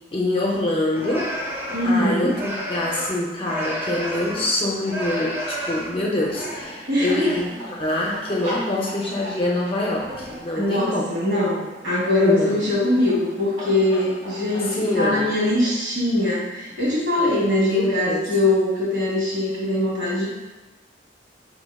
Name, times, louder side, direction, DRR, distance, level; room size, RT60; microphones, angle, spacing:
voice 1, 0.1-1.3 1.8-11.1 12.2-12.6 14.5-15.3 17.4-18.2, left 1 dB, 30° left, -3 dB, 0.4 m, -25 dB
sound 1, 0.9-4.6 4.8-7.5 7.8-8.1 9.2-9.6 9.9-10.7, equal, 15° right, 0.6 m, -32 dB
voice 2, 1.7-2.3 6.9-7.4 10.5-20.3, left 1 dB, 90° right, -7 dB, 1.3 m, -22 dB
sound 2, 6.6-15.8, equal, 35° right, 0.9 m, -39 dB
4.2 x 2.9 x 2.2 m, 1.2 s
head